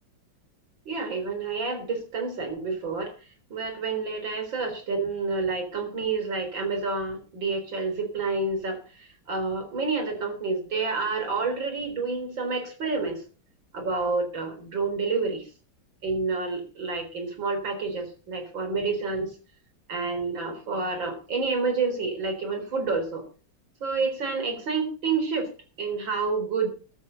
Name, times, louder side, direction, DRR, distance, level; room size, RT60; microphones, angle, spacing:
voice 1, 0.9-3.1 3.5-13.2 13.7-15.4 16.0-19.3 19.9-23.2 23.8-25.5 25.8-26.7, right 4 dB, 90° right, 6 dB, 4.6 m, -29 dB
14.5 x 13.0 x 3.9 m, 0.35 s
omnidirectional pair, 2.0 m